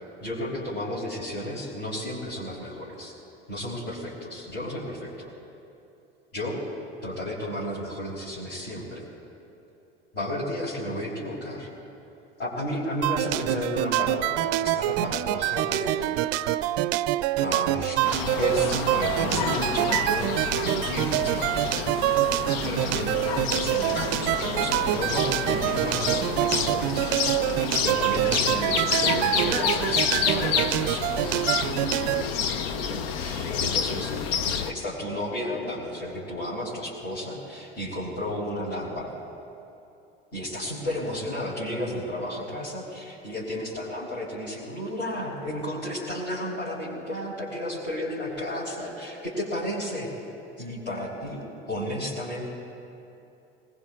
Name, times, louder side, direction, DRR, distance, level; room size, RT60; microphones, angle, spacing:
voice 1, 0.2-3.1 3.5-5.3 6.3-6.6 7.0-9.0 10.1-11.7 12.4-16.5 17.4-18.0 18.3-21.7 22.6-23.1 23.5-31.3 32.8-34.1 34.4-39.2 40.3-50.1 50.6-52.5, left 1 dB, 50° left, -9 dB, 3.9 m, -33 dB
sound 1, 13.0-32.2, right 15 dB, 55° right, 0.4 m, -26 dB
sound 2, 18.0-34.7, left 7 dB, 75° left, 0.8 m, -29 dB
20.0 x 19.5 x 2.4 m, 2.8 s
hypercardioid pair, 75°, 30 cm